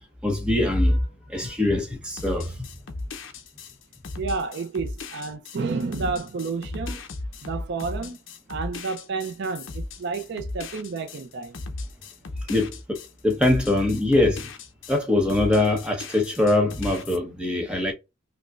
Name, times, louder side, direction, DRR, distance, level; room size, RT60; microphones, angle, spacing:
voice 1, 0.2-2.7 12.5-14.5 14.9-17.9, left 2 dB, 5° right, 0.8 m, -23 dB
sound 1, 2.2-15.0 15.3-17.2, left 2 dB, 60° left, 0.6 m, -36 dB
voice 2, 4.2-7.0 7.4-8.2 8.5-11.6, right 4 dB, 55° right, 0.4 m, -30 dB
5.2 x 2.1 x 2.3 m
head